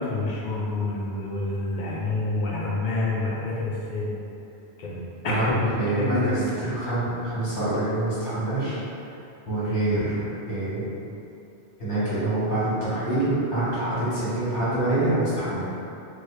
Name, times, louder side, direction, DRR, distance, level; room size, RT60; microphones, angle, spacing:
voice 1, 0.0-4.1 4.8-5.0 5.2-6.3, left 2 dB, 50° left, -5 dB, 0.7 m, -27 dB
voice 2, 5.8-8.8 9.5-10.9 11.8-15.7, right 2 dB, 75° left, -13 dB, 1.8 m, -26 dB
3.1 x 2.8 x 3.1 m, 2.7 s
omnidirectional pair, 1.2 m